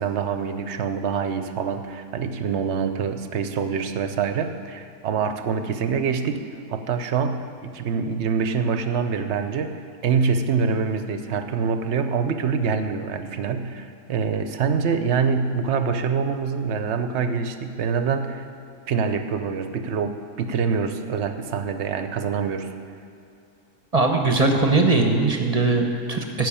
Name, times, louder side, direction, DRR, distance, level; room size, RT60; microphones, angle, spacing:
voice 1, 0.0-6.4 6.7-9.8 10.0-18.5 18.9-22.7, right 6 dB, 60° right, 9 dB, 0.8 m, -25 dB
voice 2, 23.9-26.5, right 3 dB, 30° right, 3 dB, 0.8 m, -20 dB
13.5 x 6.2 x 8.6 m, 2.5 s
omnidirectional pair, 1.7 m